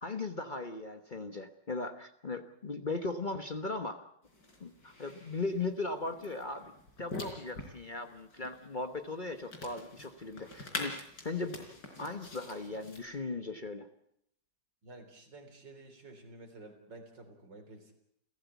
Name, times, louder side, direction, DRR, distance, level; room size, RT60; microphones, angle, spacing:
voice 1, 0.0-4.0 4.6-6.7 7.0-11.0 11.2-11.7 12.0-13.9, left 3 dB, 30° left, 8 dB, 1.1 m, -38 dB
sound 1, 4.2-13.0, left 2 dB, 75° left, 4.7 m, -46 dB
voice 2, 14.8-17.9, right 2 dB, 85° right, 6 dB, 4.4 m, -51 dB
29.5 x 15.0 x 8.2 m, 0.72 s
omnidirectional pair, 1.9 m